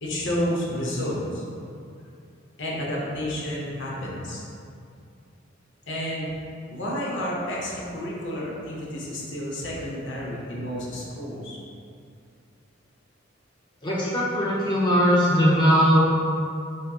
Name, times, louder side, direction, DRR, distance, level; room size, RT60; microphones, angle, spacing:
voice 1, 0.0-1.4 2.6-4.4 5.9-6.3 6.7-11.6, equal, 65° left, -4 dB, 0.6 m, -30 dB
voice 2, 13.8-16.1, equal, 20° left, -6 dB, 0.5 m, -20 dB
3.6 x 2.6 x 2.3 m, 2.5 s
head